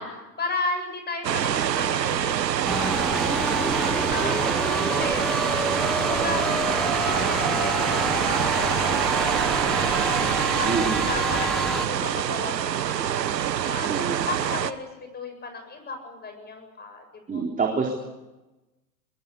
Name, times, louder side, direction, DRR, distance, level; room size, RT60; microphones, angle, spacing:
voice 1, 0.0-5.3 5.5-5.6 6.0-6.5 7.0-10.2 10.6-10.7 11.0-12.7 13.0-14.9 15.1-17.0 17.3-17.7, left 3 dB, 20° left, 6 dB, 7.8 m, -35 dB
sound 1, 1.2-14.7, right 10 dB, 80° right, 1.3 m, -25 dB
sound 2, 2.6-11.9, equal, ahead, 1.3 m, -28 dB
voice 2, 3.1-3.4 10.6-11.1 13.8-14.3 17.3-18.0, right 5 dB, 15° right, 0 dB, 4.1 m, -28 dB
22.5 x 21.5 x 8.6 m, 1.0 s
hypercardioid pair, 105°, 49 cm